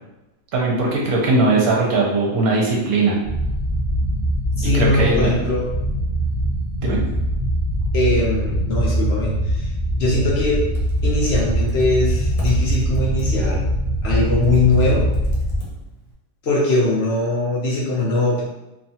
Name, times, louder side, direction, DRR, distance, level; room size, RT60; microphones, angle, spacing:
voice 1, 0.5-3.1 4.6-5.4 6.8-7.0, right 3 dB, 70° right, -2 dB, 1.1 m, -19 dB
sound 1, 3.2-15.6, equal, 5° right, 0.6 m, -22 dB
voice 2, 4.6-5.7 7.9-9.3 9.6-9.7 10.0-10.6 11.0-13.6 14.0-15.1 16.4-18.4, left 2 dB, 60° left, -4 dB, 0.7 m, -21 dB
Computer keyboard, 10.5-16.1, right 2 dB, 80° left, 1.4 m, -36 dB
2.9 x 2.3 x 2.7 m, 0.97 s
omnidirectional pair, 1.7 m